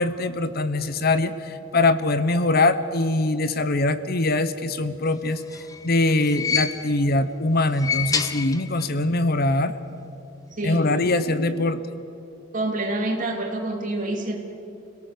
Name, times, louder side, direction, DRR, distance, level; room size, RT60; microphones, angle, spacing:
voice 1, 0.0-9.8 10.6-12.0, left 2 dB, 50° left, 12 dB, 0.8 m, -23 dB
sound 1, 5.2-7.1 7.6-9.0 9.3-9.4 10.5-10.6, left 6 dB, 15° left, 0.7 m, -29 dB
voice 2, 10.5-10.9 12.5-14.4, right 2 dB, 40° right, 1 dB, 2.8 m, -27 dB
29.5 x 17.5 x 6.8 m, 2.7 s
head